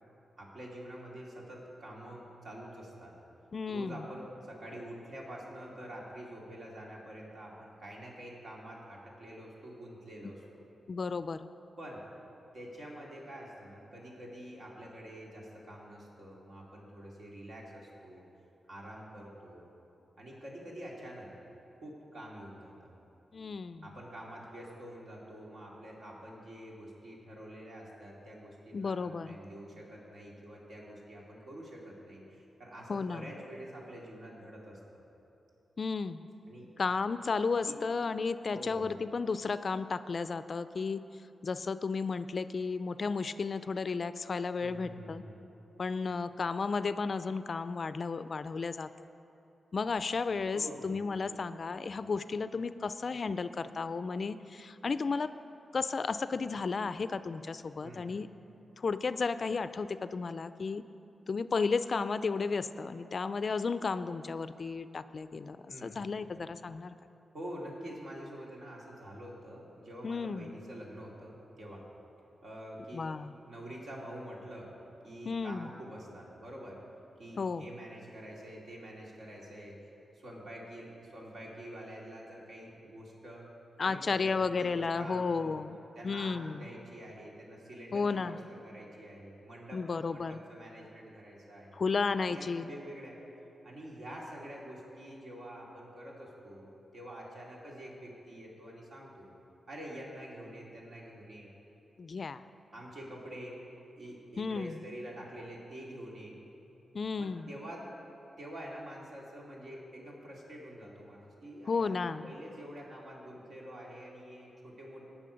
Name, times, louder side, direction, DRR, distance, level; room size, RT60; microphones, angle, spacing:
voice 1, 0.4-3.1 3.7-10.6 11.8-12.0 12.5-18.2 18.7-19.7 20.2-21.3 21.8-22.9 23.8-35.0 36.5-36.7 37.7-37.8 38.5-39.0 44.6-45.4 50.5-51.0 57.8-58.1 65.7-66.0 67.3-71.8 72.4-73.1 73.4-74.7 75.0-76.8 77.2-79.8 80.1-83.4 83.8-85.6 86.0-88.4 88.6-89.8 90.1-91.8 92.3-93.2 93.6-99.3 99.7-101.5 102.7-103.6 104.0-106.4 107.1-107.9 108.4-115.1, equal, 70° right, -3 dB, 2.5 m, -47 dB
voice 2, 3.5-4.0 10.9-11.4 23.3-23.8 28.7-29.4 32.9-33.3 35.8-36.2 36.8-41.0 41.4-45.2 45.8-48.9 49.7-55.3 55.7-58.3 58.8-60.8 61.3-66.9 70.0-70.5 72.9-73.3 75.2-75.7 77.4-77.7 83.8-85.8 86.0-86.7 87.9-88.4 89.7-90.4 91.7-92.7 102.0-102.4 104.4-104.8 106.9-107.5 111.7-112.3, left 4 dB, 55° left, 13 dB, 0.3 m, -33 dB
17.5 x 6.2 x 5.1 m, 2.9 s
cardioid pair, 80°, 0 cm